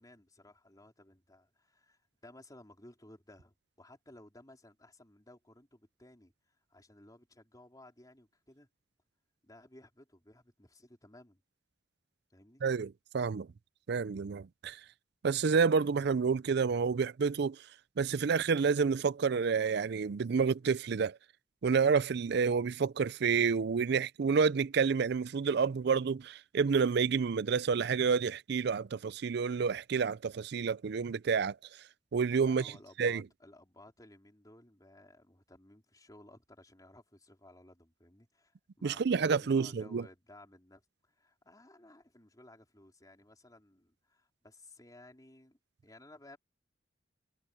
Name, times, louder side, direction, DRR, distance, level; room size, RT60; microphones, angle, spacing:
voice 1, 0.0-8.7 9.4-11.4 12.3-12.6 32.4-46.4, left 1 dB, 20° left, 4.1 m, -57 dB
voice 2, 12.6-13.5 13.9-14.8 15.2-17.6 18.0-21.2 21.6-31.6 32.1-32.7 33.0-33.2 38.8-40.0, right 5 dB, 65° right, 0.4 m, -29 dB
head